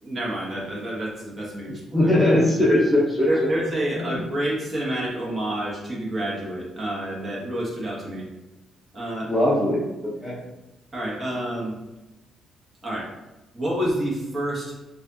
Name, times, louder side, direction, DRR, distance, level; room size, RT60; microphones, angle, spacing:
voice 1, 0.0-2.1 3.3-8.3 8.9-9.3 10.9-11.7 12.8-13.1 13.5-14.7, right 1 dB, 30° right, -4 dB, 1.3 m, -28 dB
voice 2, 1.9-3.3 9.2-10.4, left 1 dB, ahead, -6 dB, 1.0 m, -20 dB
4.9 x 2.6 x 2.8 m, 1.0 s
cardioid pair, 90°, 0 cm